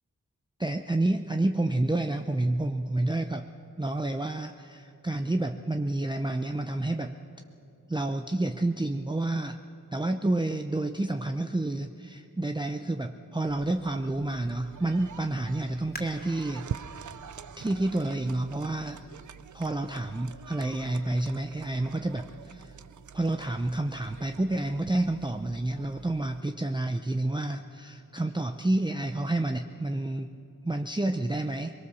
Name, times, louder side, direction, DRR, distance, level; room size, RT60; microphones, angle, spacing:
voice 1, 0.6-3.5 3.8-7.1 7.9-9.6 9.9-16.7 17.6-19.0 19.5-22.7 23.1-30.3 30.6-31.7, right 2 dB, 15° right, 6 dB, 0.7 m, -29 dB
sound 1, 13.5-26.4, right 8 dB, 60° right, 0.6 m, -45 dB
sound 2, 15.9-19.3 19.9-20.0 20.6-21.0 21.4-21.5, equal, 25° left, 2.8 m, -49 dB
22.5 x 21.5 x 7.0 m, 2.8 s
wide cardioid pair, 65°, 34 cm